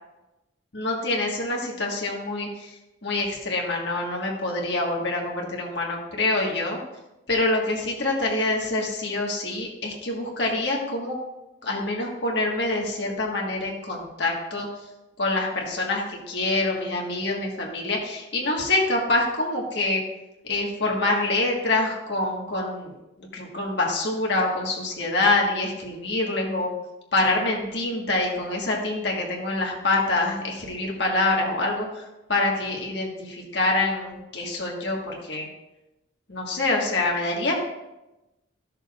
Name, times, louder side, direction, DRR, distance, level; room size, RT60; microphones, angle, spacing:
voice 1, 0.7-6.8 7.3-11.2 11.6-14.7 15.2-20.0 20.5-26.7 27.1-32.0 32.3-35.5 36.3-37.6, left 2 dB, 65° left, -1 dB, 1.6 m, -26 dB
13.5 x 6.6 x 2.5 m, 0.98 s
head